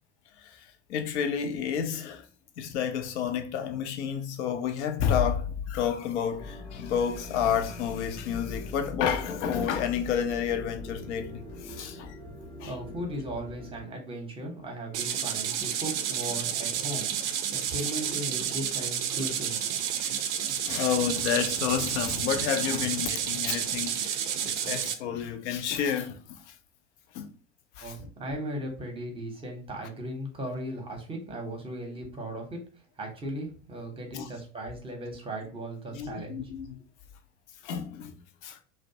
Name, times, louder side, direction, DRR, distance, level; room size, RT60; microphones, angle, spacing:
voice 1, 0.4-2.3 2.6-12.2 12.6-12.7 20.0-26.6 27.1-27.3 27.8-28.1 29.8-29.9 34.1-34.3 35.9-36.8 37.6-38.1 38.4-38.6, left 8 dB, 60° left, 0.6 m, -30 dB
sound 1, 6.3-13.8, left 2 dB, 15° left, 0.5 m, -41 dB
voice 2, 12.7-17.1 17.5-19.7 27.8-32.6 33.0-36.5, right 1 dB, 15° right, 0.8 m, -37 dB
sound 2, 14.9-24.9, right 9 dB, 60° right, 0.5 m, -30 dB
2.5 x 2.1 x 2.6 m
figure-of-eight pair, 80°, 38 cm